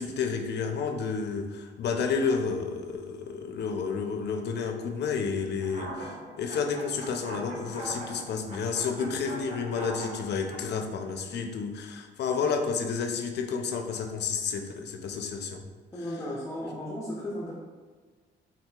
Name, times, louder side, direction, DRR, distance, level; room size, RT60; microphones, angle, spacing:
voice 1, 0.0-15.6, left 5 dB, 60° left, 4 dB, 0.5 m, -31 dB
sound 1, 5.6-10.6, right 1 dB, 35° right, 0.9 m, -41 dB
voice 2, 15.9-17.5, left 1 dB, 15° left, -5 dB, 0.6 m, -35 dB
3.7 x 2.7 x 2.3 m, 1.4 s
cardioid pair, 90°, 20 cm